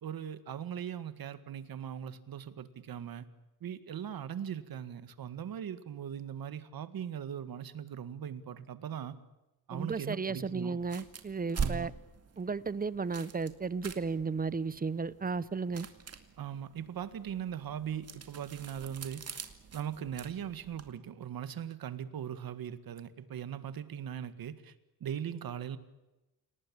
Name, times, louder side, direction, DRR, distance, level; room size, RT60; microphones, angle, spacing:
voice 1, 0.0-3.2 3.6-9.2 9.7-10.8 11.6-11.9 16.4-19.3 19.7-24.7 25.0-25.8, right 9 dB, 65° right, 1.9 m, -39 dB
voice 2, 9.7-11.9 12.4-15.9, right 4 dB, 25° right, 0.8 m, -34 dB
sound 1, 10.8-20.9, right 5 dB, 40° right, 2.2 m, -44 dB
28.0 x 18.5 x 8.8 m
wide cardioid pair, 155°, 38 cm